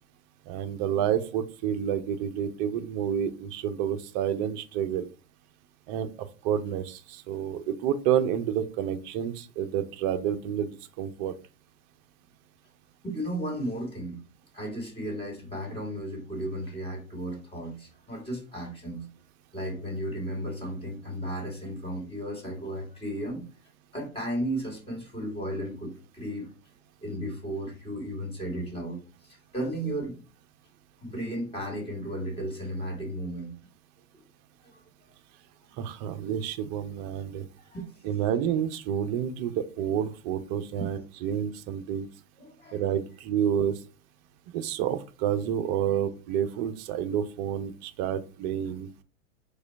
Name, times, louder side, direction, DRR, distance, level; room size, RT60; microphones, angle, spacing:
voice 1, 0.4-5.1 5.9-11.3 35.8-37.5 38.0-42.1 42.7-43.8 44.5-48.9, right 9 dB, 35° right, 10 dB, 0.5 m, -29 dB
voice 2, 13.0-14.2 14.5-19.1 19.5-23.4 23.9-26.5 27.0-30.2 31.0-33.6 34.1-34.2 34.6-34.8 37.6-37.9 40.8-40.9 42.4-42.8, right 1 dB, 15° left, -1 dB, 2.1 m, -34 dB
4.8 x 2.3 x 4.5 m, 0.36 s
hypercardioid pair, 105°, 41 cm